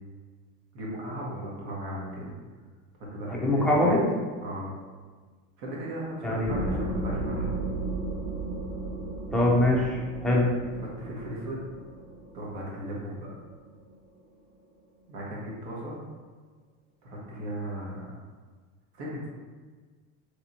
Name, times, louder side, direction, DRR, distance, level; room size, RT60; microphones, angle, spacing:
voice 1, 0.7-2.3 3.1-3.9 4.4-4.7 5.6-7.5 10.8-11.6 12.3-13.3 15.1-16.0 17.0-18.0 18.9-19.3, right 1 dB, 65° right, -4 dB, 1.3 m, -36 dB
voice 2, 3.3-4.0 6.2-6.5 9.3-10.5, left 1 dB, ahead, -5 dB, 0.3 m, -23 dB
sound 1, 6.4-13.8, right 2 dB, 15° right, 1.2 m, -35 dB
3.3 x 3.0 x 2.7 m, 1.5 s
supercardioid pair, 130°, 42 cm